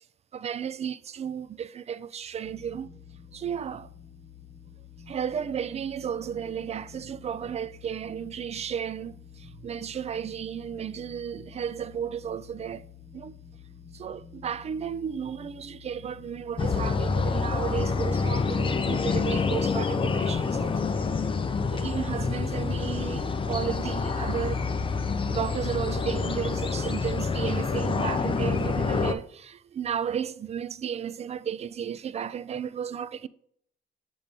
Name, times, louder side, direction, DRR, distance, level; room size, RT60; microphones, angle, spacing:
voice 1, 0.3-2.9 3.3-3.9 5.1-12.8 13.1-13.4 13.9-21.1 21.7-24.7 25.3-33.3, right 8 dB, 35° right, 0.3 m, -33 dB
sound 1, 2.4-18.7, left 8 dB, 60° left, 1.0 m, -49 dB
sound 2, 16.6-29.1, left 4 dB, 25° left, 0.5 m, -27 dB
6.8 x 3.0 x 5.1 m
cardioid pair, 90°, 20 cm